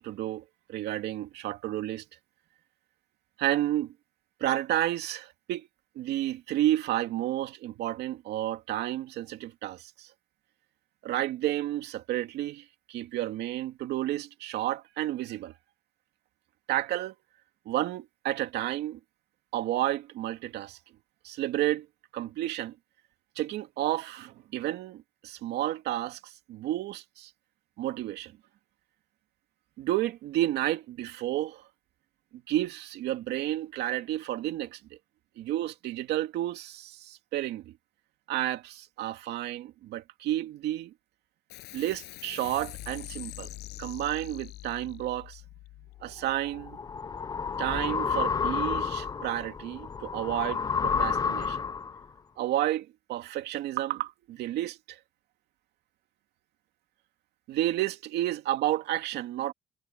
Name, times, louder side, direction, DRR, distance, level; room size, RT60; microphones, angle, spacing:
voice 1, 0.0-2.0 3.4-3.9 4.4-5.7 6.0-10.1 11.0-15.5 16.7-17.1 17.7-19.0 19.5-20.8 21.2-21.9 22.1-22.8 23.4-27.3 27.8-28.3 29.8-31.7 32.3-34.8 35.4-37.8 38.3-40.9 41.7-43.5 43.8-45.4 46.0-46.8 47.6-51.6 52.4-55.0 57.5-59.5, right 14 dB, 80° right, 2.5 m, -31 dB
sound 1, 41.5-48.4, left 18 dB, 85° left, 6.8 m, -45 dB
sound 2, 46.3-52.0, left 6 dB, 25° left, 0.5 m, -30 dB
cardioid pair, 110°, 17 cm